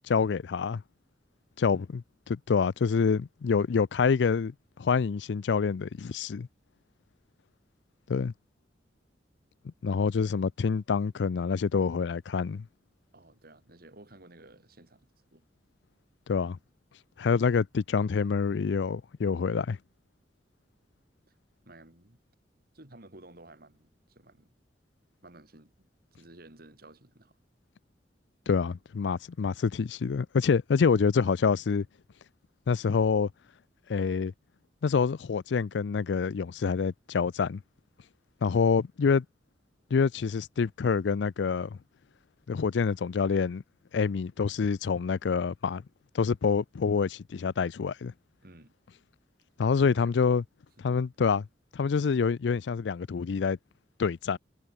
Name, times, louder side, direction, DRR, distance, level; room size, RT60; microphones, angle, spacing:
voice 1, 0.1-0.8 1.6-2.0 2.3-4.5 4.8-6.5 8.1-8.3 9.8-12.7 16.3-16.6 17.2-19.8 28.5-31.9 32.7-33.3 33.9-34.3 34.8-37.6 38.4-39.2 39.9-41.8 42.5-43.6 43.9-45.8 46.1-48.1 49.6-50.4 50.8-51.5 51.7-53.6 54.0-54.4, left 5 dB, 85° left, 0.4 m, -26 dB
voice 2, 13.1-15.4 21.6-22.2 22.7-24.5 25.2-27.4 48.4-48.7 49.7-50.1, right 2 dB, 60° right, 3.5 m, -53 dB
head